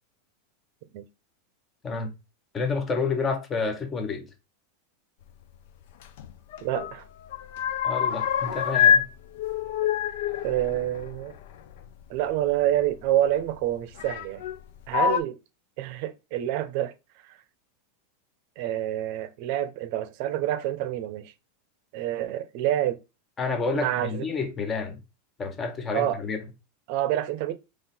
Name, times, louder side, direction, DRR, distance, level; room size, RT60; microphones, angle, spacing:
voice 1, 2.5-4.3 7.8-9.1 23.4-25.0 25.4-26.4, left 4 dB, 20° left, 1.0 m, -29 dB
sound 1, 6.0-6.9 7.2-9.1 9.4-11.9 12.9-13.0 14.0-14.6 14.9-15.2, left 9 dB, 70° left, 0.5 m, -25 dB
voice 2, 6.6-7.0 8.8-8.9 10.4-11.3 12.1-14.5 14.9-15.4 15.8-16.9 18.6-21.3 21.9-23.0 23.7-24.2 25.9-26.2 26.9-27.5, right 12 dB, 55° right, 0.6 m, -27 dB
3.8 x 3.1 x 4.3 m
supercardioid pair, 135°, 0 cm